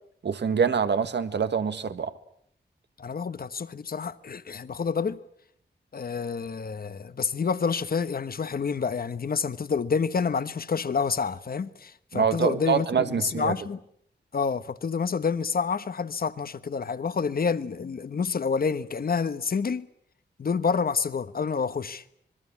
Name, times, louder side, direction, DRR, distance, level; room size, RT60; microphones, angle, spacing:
voice 1, 0.2-2.1 12.1-13.6, right 6 dB, 70° right, 1.7 m, -25 dB
voice 2, 3.0-5.2 5.9-13.8 14.3-19.9 20.4-22.0, left 5 dB, 55° left, 1.2 m, -28 dB
26.5 x 21.5 x 8.5 m
wide cardioid pair, 120°, 18 cm